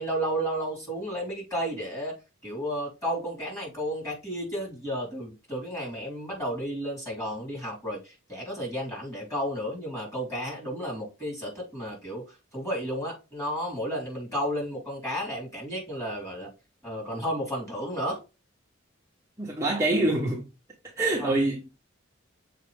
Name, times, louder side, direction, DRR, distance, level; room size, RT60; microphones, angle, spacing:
voice 1, 0.0-2.1 2.4-16.5 16.8-18.2 21.2-21.3, equal, 15° left, 3.4 m, -32 dB
voice 2, 19.4-20.4 21.0-21.8, right 2 dB, 15° right, 1.1 m, -25 dB
6.6 x 4.4 x 3.4 m
head